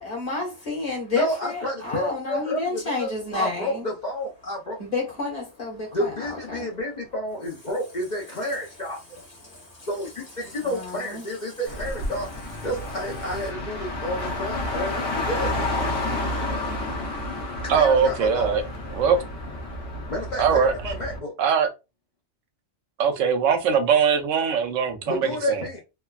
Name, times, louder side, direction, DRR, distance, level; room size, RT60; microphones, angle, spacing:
voice 1, 0.0-3.8 4.8-6.7 9.5-9.9 10.6-11.2, left 3 dB, 30° left, 1.3 m, -30 dB
voice 2, 1.1-4.8 5.9-9.0 9.9-16.0 17.6-18.6 20.1-21.3 25.1-25.8, equal, 45° left, 0.6 m, -30 dB
Car, 11.7-21.2, left 1 dB, 75° left, 1.1 m, -30 dB
voice 3, 17.7-18.6 18.9-19.2 20.4-20.9 21.4-21.7 23.0-25.6, right 6 dB, 80° right, 0.9 m, -21 dB
3.2 x 2.1 x 2.2 m
omnidirectional pair, 1.3 m